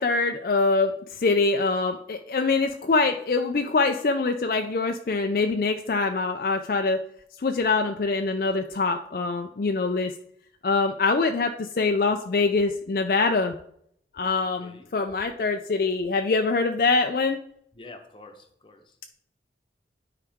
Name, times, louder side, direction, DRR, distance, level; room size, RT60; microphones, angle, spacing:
voice 1, 0.0-7.0 7.4-10.1 10.6-13.5 14.1-17.4, left 3 dB, 55° left, 5 dB, 0.4 m, -24 dB
voice 2, 17.7-19.1, left 2 dB, 30° left, 5 dB, 0.9 m, -47 dB
9.9 x 4.8 x 3.5 m, 0.68 s
head